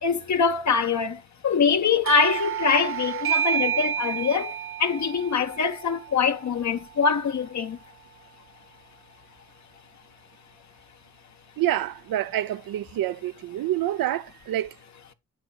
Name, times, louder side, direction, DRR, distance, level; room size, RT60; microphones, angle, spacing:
voice 1, 0.0-7.8, left 6 dB, 50° left, 1.3 m, -24 dB
Doorbell, 2.0-7.3, right 10 dB, 35° right, 0.8 m, -30 dB
voice 2, 11.6-14.7, right 13 dB, 65° right, 0.8 m, -27 dB
9.8 x 7.1 x 2.4 m
supercardioid pair, 55°, 36 cm